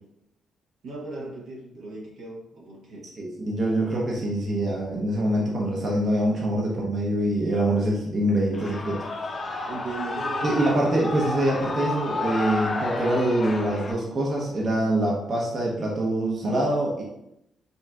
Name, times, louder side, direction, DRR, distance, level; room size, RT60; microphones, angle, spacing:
voice 1, 0.8-3.1 9.6-10.6, right 3 dB, 75° right, -4 dB, 1.2 m, -37 dB
voice 2, 3.2-9.0 9.3-9.4 10.4-17.0, right 1 dB, 40° right, -3 dB, 0.8 m, -25 dB
Shout / Cheering, 8.5-13.9, left 2 dB, 40° left, 0.6 m, -31 dB
5.4 x 2.7 x 2.3 m, 0.83 s
cardioid pair, 110°, 0 cm